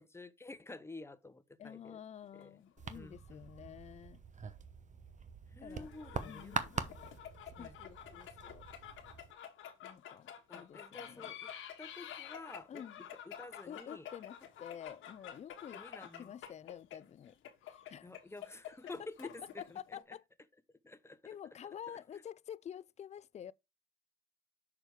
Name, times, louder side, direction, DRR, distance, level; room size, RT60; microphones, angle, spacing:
voice 1, 0.0-2.0 2.3-2.6 2.9-3.7 5.5-7.1 7.6-7.8 10.5-11.5 11.8-14.1 15.7-16.3 18.0-20.2 20.8-21.2 21.9-22.2, left 2 dB, 15° left, 0.8 m, -51 dB
voice 2, 1.6-4.2 5.6-5.9 6.2-6.8 7.5-8.6 9.8-11.3 12.7-13.0 13.7-15.8 16.2-17.4 17.7-18.1 19.8-20.2 21.3-23.5, left 9 dB, 35° left, 0.4 m, -49 dB
sound 1, 2.2-3.7 4.0-4.1 5.7-20.0, left 10 dB, 80° left, 1.4 m, -50 dB
sound 2, 2.8-9.3, right 5 dB, 40° right, 0.9 m, -44 dB
6.5 x 4.8 x 4.6 m
cardioid pair, 90°, 20 cm